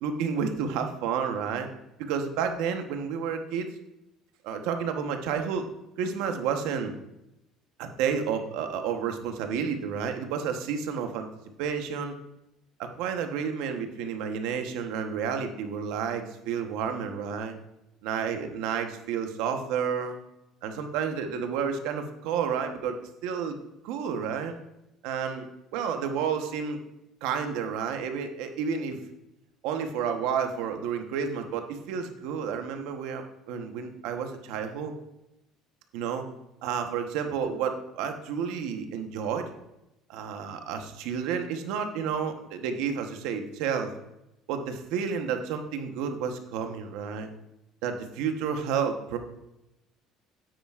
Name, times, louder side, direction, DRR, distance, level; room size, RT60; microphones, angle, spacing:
voice 1, 0.0-1.7 2.0-3.7 4.4-5.7 6.0-6.9 7.8-11.3 11.6-12.2 12.8-17.6 18.0-20.2 20.6-23.6 23.8-24.6 25.0-25.5 25.7-26.8 27.2-29.0 29.6-34.9 35.9-36.2 36.6-39.5 40.1-43.9 44.5-47.3 47.8-49.2, right 7 dB, 80° right, 6 dB, 1.0 m, -30 dB
9.1 x 8.7 x 2.4 m, 0.90 s
cardioid pair, 160°, 0 cm